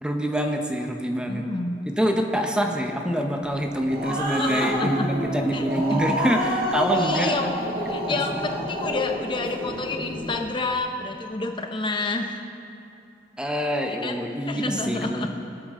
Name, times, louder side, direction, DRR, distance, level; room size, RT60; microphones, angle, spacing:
voice 1, 0.0-1.4 1.9-7.5 8.1-8.4 13.4-15.3, equal, 5° right, 3 dB, 0.8 m, -26 dB
voice 2, 1.3-1.8 4.1-5.1 5.5-6.2 6.9-7.5 7.9-12.4 13.9-14.1 14.5-15.3, left 3 dB, 30° left, 4 dB, 0.6 m, -29 dB
Growling, 3.6-10.4, right 1 dB, 55° right, 1.8 m, -28 dB
24.0 x 8.4 x 3.7 m, 2.7 s
head